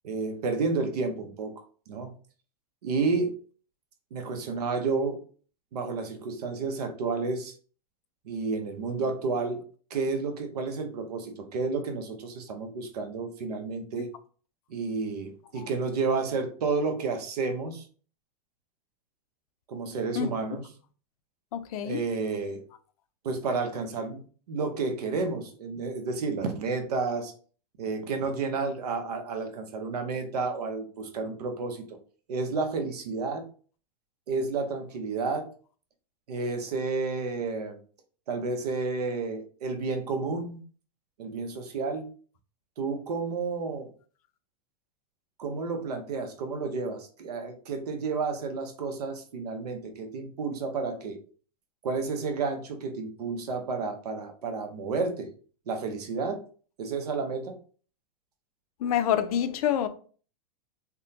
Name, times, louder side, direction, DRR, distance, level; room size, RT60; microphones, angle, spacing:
voice 1, 0.0-1.5 1.9-2.1 2.8-3.3 4.1-5.2 5.7-7.5 8.2-9.6 9.9-14.1 14.7-17.9 19.7-20.7 21.8-22.6 23.2-24.2 24.5-27.3 27.8-32.0 32.3-33.5 34.3-35.5 36.3-37.8 38.3-40.6 41.2-42.1 42.8-43.9 45.4-51.2 51.8-55.3 55.7-56.4 56.8-57.6, right 4 dB, 80° right, 0.8 m, -31 dB
voice 2, 21.5-22.0 58.8-59.9, left 9 dB, 65° left, 0.5 m, -27 dB
3.5 x 2.2 x 2.8 m
hypercardioid pair, 125°, 20 cm